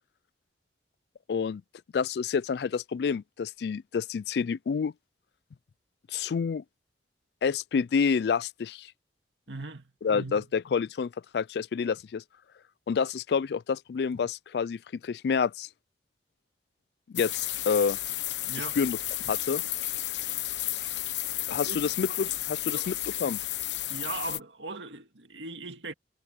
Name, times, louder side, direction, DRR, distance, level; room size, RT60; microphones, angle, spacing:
voice 1, 1.3-1.6 1.9-4.9 6.1-6.6 7.4-8.9 10.0-12.2 12.9-15.7 17.1-18.0 18.6-19.0 19.3-19.6 21.5-23.4, left 6 dB, 65° left, 0.3 m, -28 dB
voice 2, 9.5-10.5 18.4-18.8 21.6-21.8 22.7-22.9 23.9-25.9, right 3 dB, 90° right, 2.2 m, -39 dB
sound 1, 17.2-24.4, left 14 dB, 85° left, 1.1 m, -32 dB
head